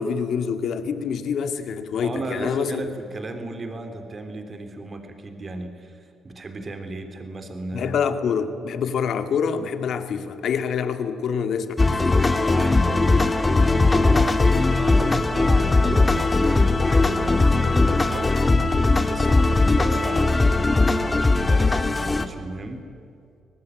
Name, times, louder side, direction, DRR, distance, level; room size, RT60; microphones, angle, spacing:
voice 1, 0.0-2.9 7.7-12.2, left 6 dB, 65° left, 8 dB, 2.0 m, -26 dB
voice 2, 2.0-7.9 12.3-20.4 20.9-22.8, right 2 dB, 35° right, 6 dB, 3.7 m, -35 dB
sound 1, 11.8-22.3, left 3 dB, 20° left, 1.7 m, -19 dB
25.0 x 19.0 x 9.7 m, 2.4 s
cardioid pair, 90°, 0 cm